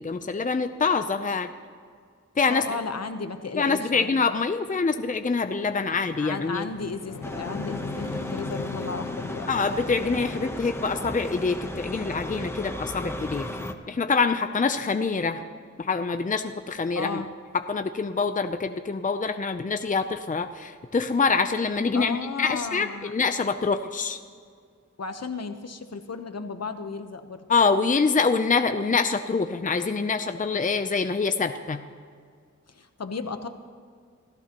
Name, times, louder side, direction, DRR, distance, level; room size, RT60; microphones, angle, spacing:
voice 1, 0.0-1.5 2.4-2.6 3.6-6.7 9.5-13.5 13.9-15.4 15.8-17.2 17.5-24.2 27.5-31.8, left 4 dB, 25° left, 8 dB, 0.6 m, -25 dB
voice 2, 2.5-4.2 5.9-9.5 16.9-17.3 21.9-23.1 25.0-27.4 32.7-33.5, left 4 dB, 60° left, 8 dB, 1.0 m, -34 dB
sound 1, 4.1-4.2 4.7-15.5, left 5 dB, 80° left, 0.9 m, -41 dB
sound 2, 7.2-13.7, left 1 dB, 10° left, 1.0 m, -35 dB
27.0 x 14.0 x 3.0 m, 2.1 s
wide cardioid pair, 85°, 30 cm